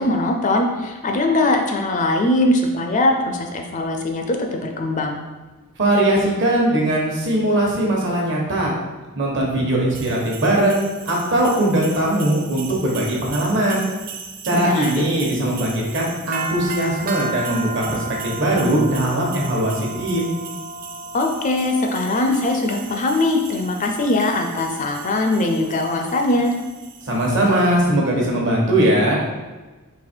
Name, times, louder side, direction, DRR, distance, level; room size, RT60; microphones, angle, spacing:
voice 1, 0.0-5.2 14.5-15.0 21.1-26.5, left 2 dB, 35° left, 3 dB, 0.4 m, -21 dB
voice 2, 5.8-8.7 9.1-13.9 14.4-20.4 27.0-29.2, right 1 dB, 55° right, -2 dB, 1.1 m, -20 dB
sound 1, 9.9-27.7, right 4 dB, 40° right, 0.4 m, -35 dB
4.1 x 2.9 x 4.4 m, 1.2 s
head